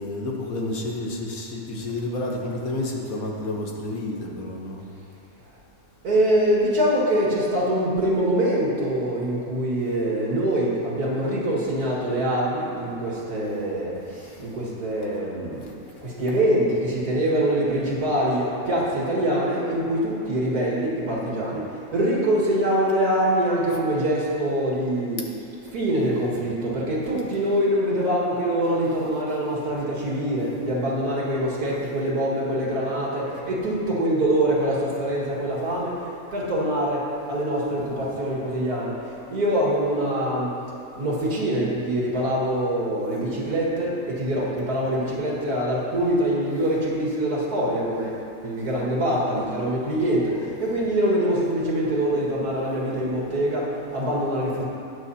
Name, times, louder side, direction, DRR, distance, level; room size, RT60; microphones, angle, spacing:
voice 1, 0.0-4.8 13.5-13.6 14.1-14.5 15.6-15.9 25.2-25.3 43.1-43.3, left 2 dB, 70° left, -1 dB, 1.6 m, -31 dB
voice 2, 6.0-13.9 14.4-15.6 16.2-21.6 21.9-25.2 25.7-35.9 36.3-37.0 37.3-38.9 39.3-40.5 41.0-43.9 44.2-48.1 48.4-50.2 50.6-53.6 53.9-54.6, right 1 dB, 80° right, -5 dB, 2.4 m, -24 dB
19.0 x 6.5 x 2.8 m, 2.7 s
omnidirectional pair, 1.6 m